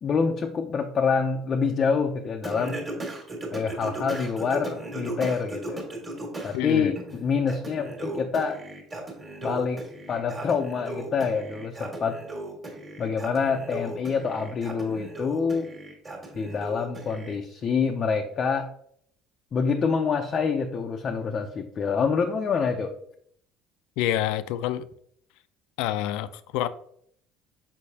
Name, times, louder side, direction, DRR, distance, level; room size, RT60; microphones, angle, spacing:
voice 1, 0.0-2.8 3.5-5.9 6.4-8.6 9.4-9.8 10.1-12.2 13.0-15.7 16.3-18.7 19.5-22.9, left 5 dB, 30° left, 0.5 m, -26 dB
Singing, 2.4-6.6 7.0-17.4, right 2 dB, 20° right, 1.6 m, -37 dB
voice 2, 6.5-6.9 24.0-24.8 25.8-26.7, left 12 dB, 85° left, 0.4 m, -27 dB
6.4 x 5.5 x 2.8 m
cardioid pair, 165°, 0 cm